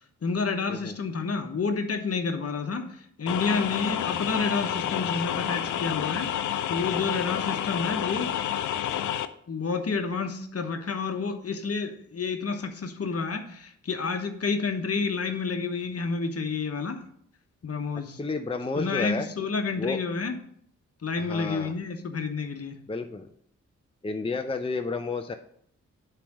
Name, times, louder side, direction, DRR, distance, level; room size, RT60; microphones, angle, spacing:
voice 1, 0.2-8.3 9.5-17.0 17.6-18.2 18.8-20.4 21.0-22.8, left 4 dB, 50° left, 6 dB, 1.1 m, -29 dB
sound 1, 3.3-9.3, left 10 dB, 70° left, 0.5 m, -29 dB
voice 2, 18.2-19.3 19.8-20.0 21.2-21.7 22.9-23.3 24.0-25.3, left 3 dB, 20° left, 6 dB, 0.6 m, -31 dB
8.4 x 3.4 x 6.1 m, 0.65 s
supercardioid pair, 40°, 31 cm